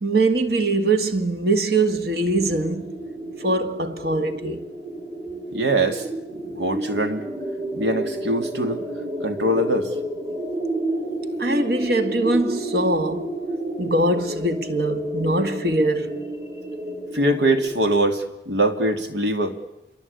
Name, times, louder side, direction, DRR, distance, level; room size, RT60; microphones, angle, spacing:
voice 1, 0.0-2.9 3.4-4.7 11.4-13.3 13.8-16.3, right 2 dB, 60° right, 1.9 m, -22 dB
sound 1, 2.3-17.7, right 1 dB, 35° right, 4.4 m, -31 dB
voice 2, 5.5-6.1 6.3-7.3 7.7-8.9 9.2-9.9 17.1-19.6, right 1 dB, 85° right, 2.7 m, -22 dB
27.0 x 22.5 x 8.5 m
head